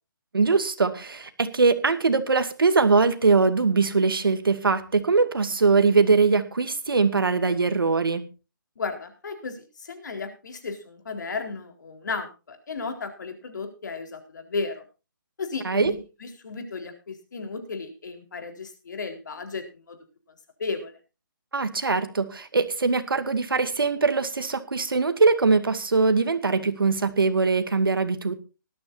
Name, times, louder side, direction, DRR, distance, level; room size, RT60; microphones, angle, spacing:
voice 1, 0.3-8.3 15.6-15.9 21.5-28.4, right 4 dB, 90° right, 9 dB, 2.3 m, -22 dB
voice 2, 8.8-14.8 15.4-20.0 20.6-21.0, left 4 dB, 55° left, 6 dB, 4.2 m, -34 dB
19.5 x 13.5 x 2.7 m, 0.31 s
hypercardioid pair, 165°, 11 cm